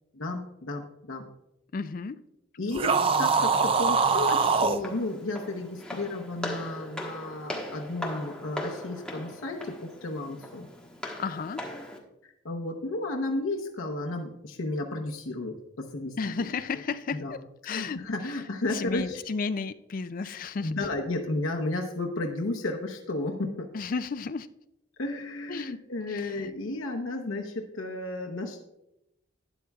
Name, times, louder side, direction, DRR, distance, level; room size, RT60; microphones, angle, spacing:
voice 1, 0.1-1.3 2.6-10.7 12.2-16.5 17.2-17.3 17.7-19.2 20.2-20.3 20.6-23.7 25.0-28.6, left 2 dB, 90° left, 1 dB, 0.9 m, -33 dB
voice 2, 1.7-2.2 11.2-11.6 16.2-17.4 17.6-18.0 18.7-20.7 23.7-24.5 25.5-25.8 26.1-26.5, left 4 dB, 45° left, 13 dB, 0.4 m, -33 dB
sound 1, 2.7-4.8, right 5 dB, 30° right, 0.4 m, -23 dB
Walk footsteps, 4.0-12.0, left 1 dB, 5° left, 1.3 m, -39 dB
12.0 x 10.0 x 2.4 m, 0.87 s
head